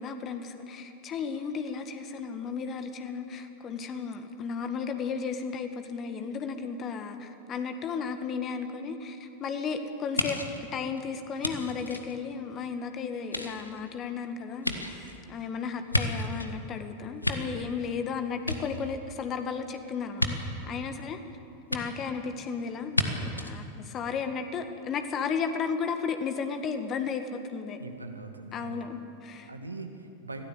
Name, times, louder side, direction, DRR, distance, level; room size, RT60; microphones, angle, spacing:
voice 1, 0.0-20.3 20.6-21.2 21.7-27.8 28.5-29.5, left 5 dB, 30° left, 7 dB, 1.7 m, -34 dB
sound 1, 10.2-12.8 13.2-16.6 17.0-18.0 18.3-19.3 20.2-20.3 21.7-21.8 22.9-23.1 23.4-23.5, left 1 dB, 85° left, 1.6 m, -32 dB
voice 2, 27.8-28.9 29.4-30.4, right 3 dB, 80° right, 5 dB, 2.1 m, -41 dB
25.5 x 17.0 x 8.3 m, 2.7 s
figure-of-eight pair, 90°, 0 cm